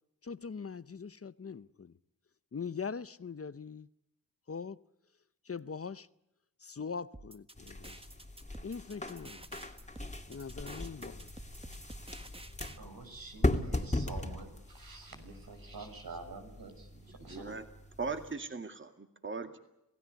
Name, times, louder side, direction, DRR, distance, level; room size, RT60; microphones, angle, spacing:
voice 1, 0.2-2.0 2.5-3.9 4.5-4.8 5.4-6.1 6.6-8.0 8.6-9.5 10.3-11.1, left 5 dB, 40° left, 0.8 m, -41 dB
sound 1, 7.1-12.8, right 2 dB, 15° right, 1.5 m, -51 dB
sound 2, 7.6-18.3, left 2 dB, 20° left, 2.3 m, -38 dB
voice 2, 12.8-17.6, right 3 dB, 80° right, 6.3 m, -47 dB
voice 3, 17.3-17.6 18.0-19.6, right 4 dB, 35° right, 2.1 m, -39 dB
27.5 x 17.0 x 8.2 m
wide cardioid pair, 70°, 35 cm